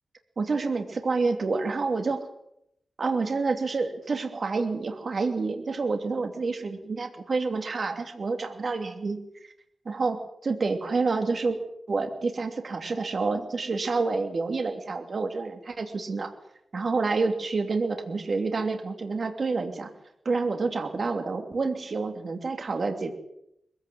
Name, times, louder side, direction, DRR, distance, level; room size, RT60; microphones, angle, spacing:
voice 1, 0.4-2.2 3.0-9.2 9.8-11.6 11.9-16.3 16.7-19.9 20.2-23.1, right 4 dB, 50° right, 6 dB, 2.8 m, -28 dB
21.5 x 15.5 x 7.9 m, 0.77 s
wide cardioid pair, 110°, 0 cm